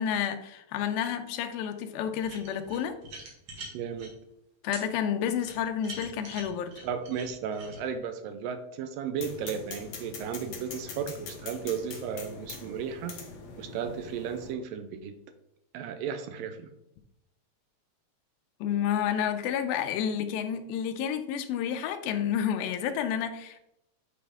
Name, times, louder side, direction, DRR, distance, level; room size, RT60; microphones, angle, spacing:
voice 1, 0.0-2.9 4.6-6.7 18.6-23.7, left 9 dB, 80° left, 7 dB, 2.3 m, -30 dB
sound 1, 2.2-4.1 4.7-4.8 5.4-7.8, right 2 dB, 50° right, 2.3 m, -43 dB
voice 2, 3.7-4.1 6.8-13.2 13.6-15.2 15.7-16.7, right 7 dB, 80° right, 8 dB, 2.1 m, -34 dB
sound 2, 9.2-14.5, left 4 dB, 65° left, 1.9 m, -43 dB
8.8 x 4.3 x 3.5 m, 0.82 s
omnidirectional pair, 4.4 m